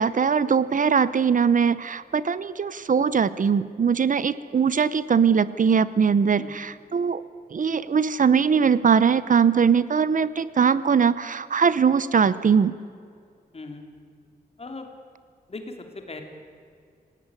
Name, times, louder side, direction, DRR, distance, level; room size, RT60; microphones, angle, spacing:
voice 1, 0.0-7.2 7.5-12.7, right 6 dB, 55° right, 16 dB, 0.8 m, -21 dB
voice 2, 13.5-13.8 14.6-14.9 15.5-16.2, left 3 dB, 40° left, 5 dB, 3.2 m, -38 dB
27.0 x 17.5 x 9.7 m, 2.3 s
wide cardioid pair, 140°, 16 cm